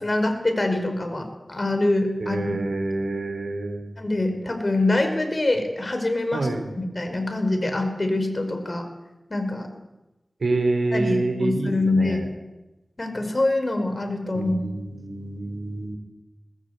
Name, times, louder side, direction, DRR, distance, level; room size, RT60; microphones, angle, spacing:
voice 1, 0.0-2.4 4.0-6.5 6.8-8.8 9.3-9.7 10.9-12.2 13.0-14.6, left 2 dB, 45° left, 6 dB, 5.3 m, -24 dB
voice 2, 2.2-4.0 6.3-6.7 10.4-12.2 14.3-16.0, right 2 dB, 90° right, 7 dB, 3.7 m, -27 dB
21.0 x 21.0 x 8.3 m, 1.0 s
wide cardioid pair, 45°, 0 cm